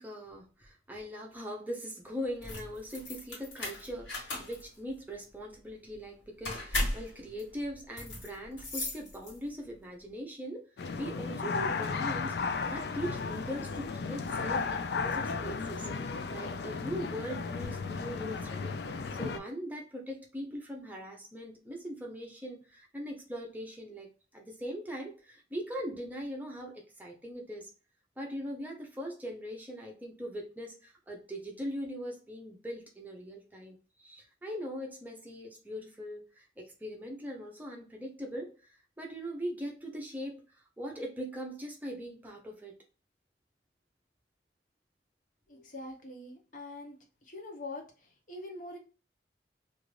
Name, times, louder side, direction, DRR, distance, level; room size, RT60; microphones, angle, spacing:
voice 1, 0.0-10.6 11.0-24.1 24.3-27.7 28.2-40.4 40.8-42.7, equal, 10° right, 0 dB, 0.6 m, -41 dB
sound 1, 2.3-9.7, left 1 dB, 85° left, 1.4 m, -37 dB
sound 2, 10.8-19.4, left 4 dB, 60° left, 0.3 m, -34 dB
voice 2, 45.5-47.0 47.3-48.8, left 2 dB, 45° left, 1 dB, 0.8 m, -44 dB
2.5 x 2.5 x 3.1 m, 0.35 s
head